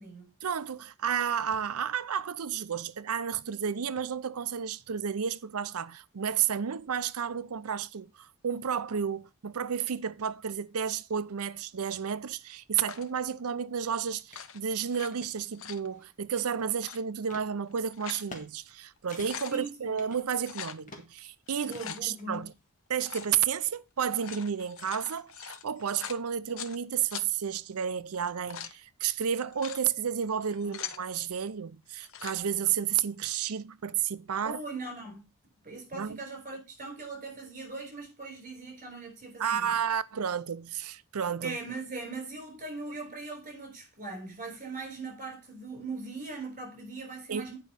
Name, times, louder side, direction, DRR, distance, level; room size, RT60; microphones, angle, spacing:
voice 1, 0.4-22.5 22.9-34.6 35.9-36.2 39.4-41.6 47.3-47.5, right 8 dB, 80° right, 0.6 m, -32 dB
sound 1, 12.8-13.2 14.2-15.1 15.4-15.9 16.7-17.0 17.7-18.3 18.7-18.8 19.0-19.6 20.4-20.8 21.5-22.0 23.0-23.3 24.0-26.8 27.1-27.3 28.1-28.8 29.4-29.8 30.4-31.0 31.9-32.4, left 8 dB, 65° left, 0.7 m, -42 dB
sound 2, 14.3-14.5 14.9-15.3 15.9-16.8 17.3-17.5 18.1-18.5 18.7-18.8 19.1-19.6 20.0-20.6 20.9-21.3 21.7-22.5, left 2 dB, 35° left, 1.7 m, -48 dB
voice 2, 19.5-20.0 21.6-22.4 30.6-30.8 34.4-35.3 35.6-39.7 41.4-47.6, right 3 dB, 35° right, 4.8 m, -40 dB
9.2 x 5.3 x 5.2 m
head